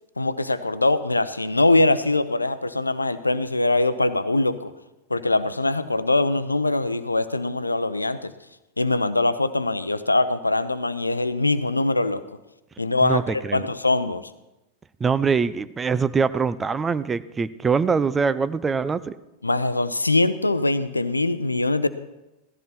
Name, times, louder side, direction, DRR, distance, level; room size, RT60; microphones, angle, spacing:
voice 1, 0.2-4.7 5.1-8.3 8.8-12.2 12.8-14.3 19.4-21.9, left 2 dB, 80° left, 14 dB, 0.7 m, -22 dB
voice 2, 13.0-13.7 15.0-19.2, right 5 dB, 15° right, 14 dB, 0.6 m, -23 dB
17.0 x 14.0 x 4.4 m, 0.96 s
figure-of-eight pair, 90°, 0 cm